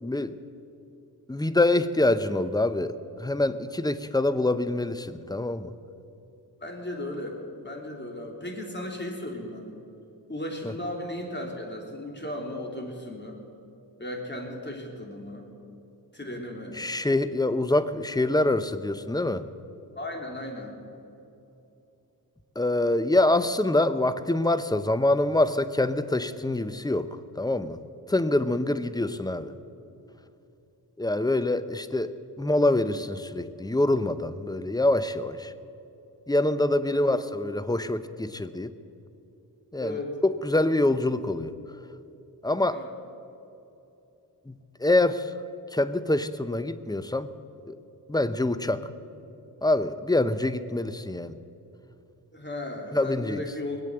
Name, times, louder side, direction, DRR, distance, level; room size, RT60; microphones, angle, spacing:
voice 1, 0.0-0.3 1.3-5.7 16.8-19.4 22.6-27.1 27.4-27.8 28.1-29.5 31.0-35.5 36.3-38.7 39.7-40.0 40.4-41.5 42.4-42.8 44.5-45.3 45.7-47.3 47.7-47.8 48.1-48.9 49.6-51.4 52.9-53.4, left 2 dB, 10° left, 13 dB, 0.8 m, -25 dB
voice 2, 6.6-9.7 10.3-13.4 14.0-15.5 16.1-16.8 20.0-20.8 28.5-28.6 36.9-37.2 39.8-40.2 42.7-42.9 48.6-48.9 52.3-53.8, left 1 dB, 25° left, 1 dB, 3.4 m, -36 dB
20.5 x 8.3 x 7.8 m, 2.8 s
cardioid pair, 50°, 41 cm